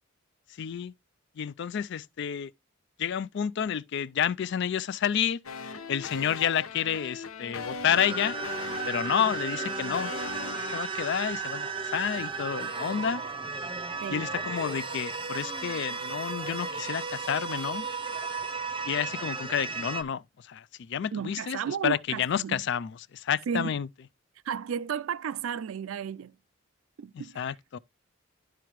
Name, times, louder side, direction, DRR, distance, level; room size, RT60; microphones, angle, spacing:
voice 1, 0.6-0.9 1.4-2.5 3.0-5.4 5.9-8.4 8.9-10.1 10.6-13.2 14.1-17.9 18.8-23.9 27.1-27.8, left 8 dB, 55° left, 0.3 m, -30 dB
sound 1, 5.4-10.8, left 4 dB, 80° left, 1.0 m, -39 dB
sound 2, 7.9-20.0, right 4 dB, 25° right, 0.7 m, -34 dB
voice 2, 21.1-22.6 23.5-23.7 24.4-26.4 27.0-27.4, right 7 dB, 70° right, 0.4 m, -33 dB
12.0 x 4.7 x 3.0 m
head